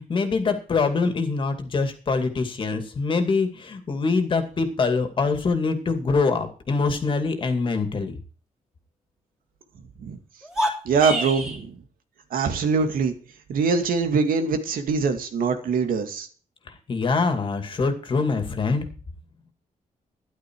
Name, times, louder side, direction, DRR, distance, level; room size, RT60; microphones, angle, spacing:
voice 1, 0.0-8.2 16.7-18.9, left 4 dB, 35° left, 7 dB, 2.4 m, -24 dB
sound 1, 10.4-11.6, equal, 5° right, 3.4 m, -27 dB
voice 2, 10.8-11.8 12.3-13.1 13.5-16.3, right 5 dB, 90° right, 7 dB, 2.4 m, -23 dB
13.0 x 11.5 x 4.7 m, 0.38 s
wide cardioid pair, 180°, 14 cm